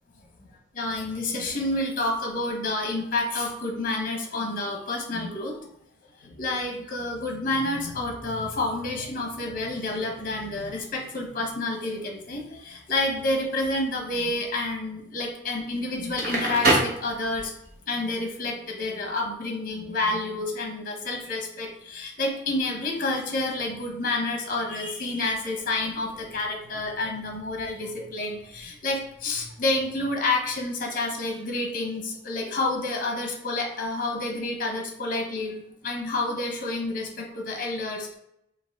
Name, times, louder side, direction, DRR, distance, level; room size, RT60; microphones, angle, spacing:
voice 1, 0.8-5.6 6.2-17.5 17.9-38.1, left 2 dB, 45° left, 1 dB, 0.9 m, -29 dB
Crackle, 16.0-17.7, right 1 dB, 50° right, 1.1 m, -24 dB
5.0 x 2.5 x 3.5 m, 0.78 s
head